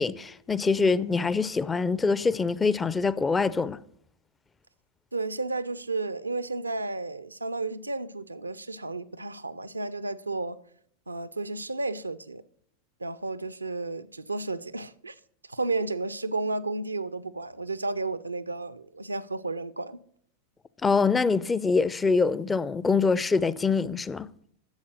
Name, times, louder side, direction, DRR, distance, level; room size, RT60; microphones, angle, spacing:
voice 1, 0.0-3.8 20.8-24.3, left 4 dB, 15° left, 0.4 m, -24 dB
voice 2, 5.1-10.6 11.1-12.4 13.0-15.2 15.5-20.0, right 3 dB, 80° right, 0.5 m, -32 dB
11.5 x 7.4 x 6.2 m
figure-of-eight pair, 90°, 0 cm